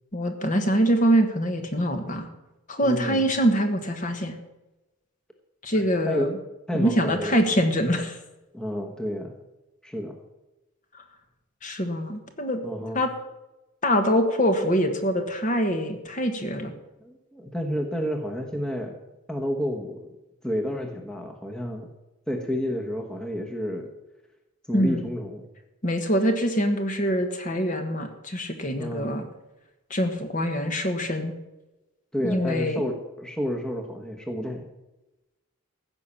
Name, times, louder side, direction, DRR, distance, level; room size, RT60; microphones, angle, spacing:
voice 1, 0.1-2.3 2.7-4.4 5.6-6.3 6.7-8.2 10.9-11.0 11.6-12.6 12.9-13.1 13.8-16.7 24.7-25.1 25.8-29.2 29.9-31.3 32.2-32.8, equal, 35° left, 6 dB, 1.4 m, -24 dB
voice 2, 2.8-3.2 6.1-6.3 6.7-7.3 8.5-9.3 9.8-10.2 12.6-13.0 17.0-19.0 19.3-20.1 20.4-21.9 22.3-23.9 24.7-25.4 28.8-29.1 32.1-34.7, equal, 5° left, 2 dB, 1.1 m, -30 dB
15.0 x 5.8 x 8.5 m, 1.0 s
head